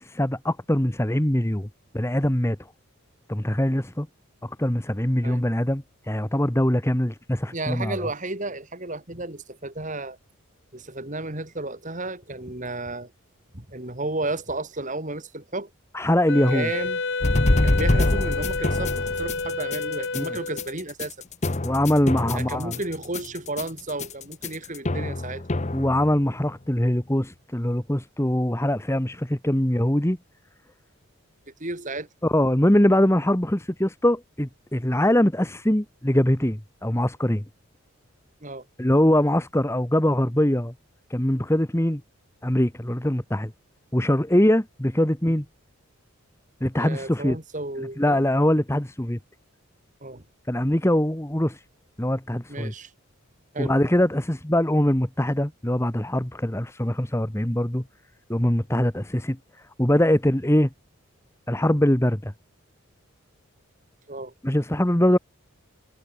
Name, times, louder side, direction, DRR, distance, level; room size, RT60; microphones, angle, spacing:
voice 1, 0.0-1.7 1.9-2.6 3.3-4.1 4.4-8.0 15.9-16.7 20.1-20.3 21.6-22.7 25.7-30.2 32.2-37.4 38.8-40.7 41.1-42.0 42.4-43.5 43.9-45.4 46.6-47.4 48.0-49.2 50.5-51.6 52.0-52.7 53.6-57.8 58.3-59.4 59.8-60.7 61.5-62.3 64.4-65.2, left 1 dB, 10° left, 1.2 m, -22 dB
voice 2, 7.5-10.2 10.7-13.1 13.5-15.7 16.5-17.0 17.6-21.1 22.3-25.4 31.6-32.1 38.4-38.7 46.7-48.2 50.0-50.2 52.5-52.9 53.5-53.7 64.1-64.3, right 2 dB, 35° right, 2.9 m, -33 dB
Wind instrument woodwind instrument, 16.3-20.8, left 3 dB, 55° left, 1.8 m, -29 dB
sound 1, 17.2-26.4, left 2 dB, 30° left, 1.0 m, -25 dB
head